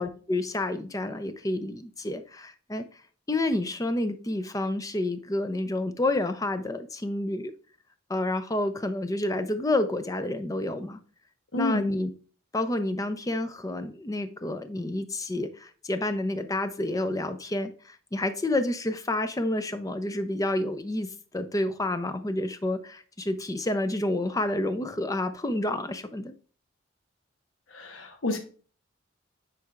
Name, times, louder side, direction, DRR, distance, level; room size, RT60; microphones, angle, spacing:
voice 1, 0.0-2.8 3.3-7.5 8.1-11.0 11.5-12.1 12.5-26.3, left 1 dB, 15° left, 0.5 m, -29 dB
voice 2, 11.5-11.9 27.7-28.4, left 2 dB, 70° left, 1.2 m, -29 dB
9.3 x 4.6 x 2.4 m
head